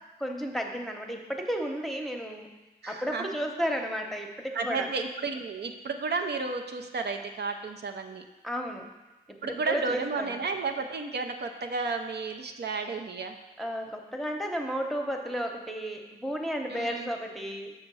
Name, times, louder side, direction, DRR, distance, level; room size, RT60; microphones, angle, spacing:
voice 1, 0.2-2.5 2.9-4.9 8.4-8.9 9.3-10.3 13.6-17.7, equal, ahead, 2 dB, 0.8 m, -33 dB
voice 2, 2.8-3.3 4.5-8.2 9.4-13.4 16.7-17.1, right 4 dB, 80° right, 4 dB, 0.6 m, -32 dB
6.2 x 4.3 x 6.1 m, 1.1 s
wide cardioid pair, 80°, 17 cm